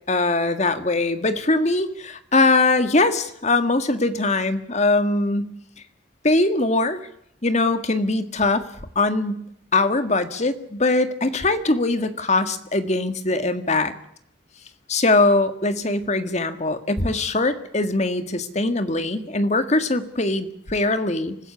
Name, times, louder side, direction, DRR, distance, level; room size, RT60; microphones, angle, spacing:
voice 1, 0.1-5.5 6.2-7.0 7.4-8.7 9.0-9.5 9.7-13.9 14.9-21.4, left 2 dB, 40° left, 10 dB, 1.7 m, -21 dB
25.0 x 15.0 x 9.7 m, 0.72 s
head